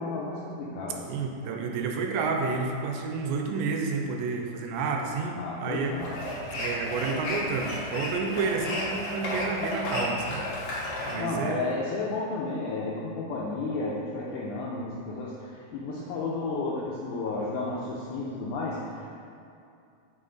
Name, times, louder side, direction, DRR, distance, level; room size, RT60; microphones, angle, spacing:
voice 1, 0.0-1.1 5.4-6.3 11.2-19.1, left 3 dB, 85° left, -5 dB, 1.8 m, -32 dB
voice 2, 1.0-6.0 6.5-10.4 11.1-11.8, right 4 dB, 80° right, 2 dB, 2.3 m, -30 dB
sound 1, 5.8-11.2, left 1 dB, 65° left, 1.5 m, -33 dB
7.6 x 5.1 x 3.8 m, 2.5 s
omnidirectional pair, 4.3 m